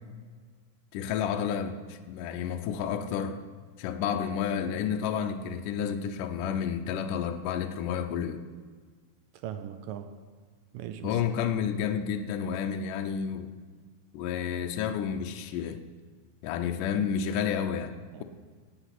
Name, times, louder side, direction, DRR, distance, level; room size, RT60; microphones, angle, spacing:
voice 1, 0.9-3.4 3.8-8.4 11.0-13.5 14.1-15.8 16.4-17.9, left 8 dB, 75° left, 6 dB, 2.2 m, -30 dB
voice 2, 9.4-10.1 10.7-11.2 18.1-18.2, right 10 dB, 80° right, 9 dB, 2.3 m, -38 dB
18.0 x 8.1 x 6.0 m, 1.6 s
omnidirectional pair, 3.9 m